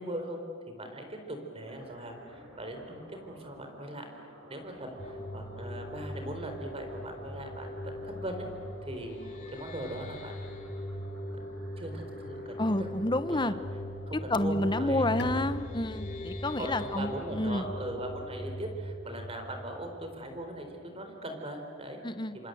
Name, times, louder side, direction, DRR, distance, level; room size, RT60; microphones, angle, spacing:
voice 1, 0.0-4.1 4.5-8.5 8.9-9.2 9.5-10.3 11.3-12.9 13.3-13.6 14.1-15.4 16.6-22.0 22.3-22.5, right 1 dB, 30° right, 4 dB, 4.1 m, -40 dB
sound 1, 1.6-14.8, right 1 dB, 75° right, 6.5 m, -55 dB
sound 2, 5.0-20.4, equal, 40° left, 3.1 m, -40 dB
voice 2, 12.6-13.5 14.3-17.7 22.0-22.4, left 1 dB, 25° left, 12 dB, 1.0 m, -29 dB
Bowed string instrument, 15.2-20.8, left 2 dB, 55° left, 1.2 m, -48 dB
27.0 x 26.5 x 7.9 m, 2.6 s
head